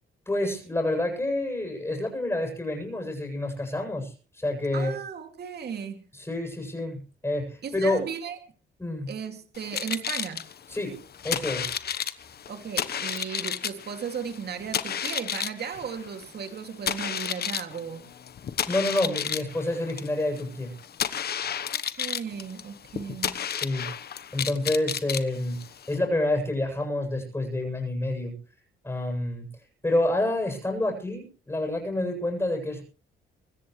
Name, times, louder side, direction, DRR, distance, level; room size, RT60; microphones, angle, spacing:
voice 1, 0.3-5.0 6.1-8.1 8.8-9.1 10.7-11.0 11.2-11.7 18.7-20.7 23.6-25.6 25.9-28.3 28.8-29.5 29.8-32.8, left 1 dB, 15° left, 7.6 m, -28 dB
voice 2, 4.7-6.0 7.6-8.4 9.1-10.4 12.5-18.0 21.7-23.3, right 7 dB, 55° right, 2.6 m, -36 dB
sound 1, 9.5-26.0, left 8 dB, 50° left, 1.1 m, -32 dB
24.5 x 14.0 x 3.3 m
cardioid pair, 90°, 20 cm